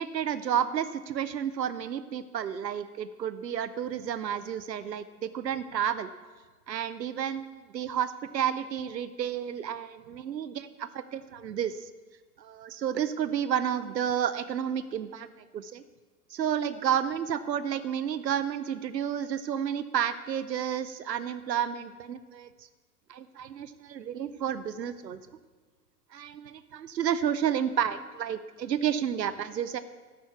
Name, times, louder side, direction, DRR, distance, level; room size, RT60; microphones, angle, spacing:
voice 1, 0.0-6.1 6.7-11.9 12.4-15.3 15.5-15.8 16.3-22.7 23.1-25.2 26.1-29.8, right 9 dB, 85° right, 14 dB, 0.7 m, -31 dB
12.0 x 9.6 x 7.0 m, 1.4 s
figure-of-eight pair, 95°, 49 cm